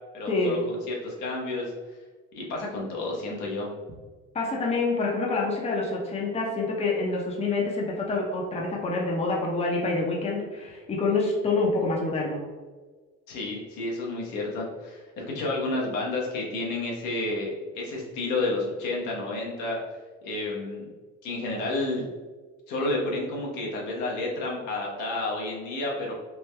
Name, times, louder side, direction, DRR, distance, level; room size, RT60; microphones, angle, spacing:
voice 1, 0.1-1.7 2.3-3.7 13.3-19.8 20.2-20.9 21.2-22.1 22.7-26.1, left 2 dB, 80° left, -3 dB, 1.0 m, -30 dB
voice 2, 4.3-12.4, left 3 dB, 20° left, -2 dB, 0.7 m, -27 dB
3.4 x 2.1 x 3.2 m, 1.3 s
cardioid pair, 115°, 30 cm